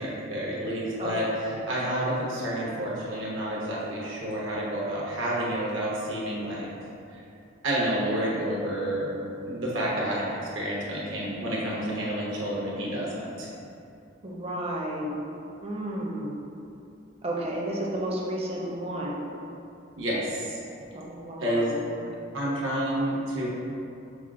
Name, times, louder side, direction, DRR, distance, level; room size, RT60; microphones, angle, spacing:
voice 1, 0.0-6.7 7.1-7.2 7.6-10.3 10.5-13.5 20.0-20.6 21.4-21.7 22.3-23.5, right 1 dB, 75° right, -6 dB, 1.0 m, -29 dB
voice 2, 14.2-15.2 15.6-16.3 17.2-19.3 20.9-21.8, right 1 dB, 30° right, -3 dB, 0.5 m, -32 dB
6.0 x 2.0 x 3.6 m, 2.7 s
head